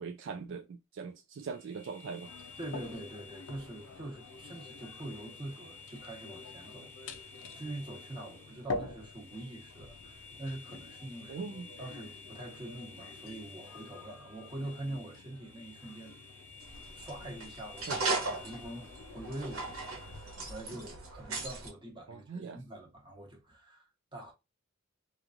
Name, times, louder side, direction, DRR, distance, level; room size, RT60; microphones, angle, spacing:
voice 1, 0.0-2.3 11.3-11.7 17.9-18.0 22.1-22.6, right 5 dB, 60° right, 0.3 m, -41 dB
sound 1, 1.4-20.6, left 4 dB, 10° left, 0.7 m, -53 dB
sound 2, 2.2-20.2, left 3 dB, 75° left, 0.5 m, -47 dB
voice 2, 2.6-6.9 7.5-11.4 11.8-16.2 16.9-24.3, right 1 dB, 20° right, 0.9 m, -44 dB
sound 3, 16.6-21.7, right 3 dB, 85° right, 1.2 m, -37 dB
3.0 x 2.3 x 2.4 m
head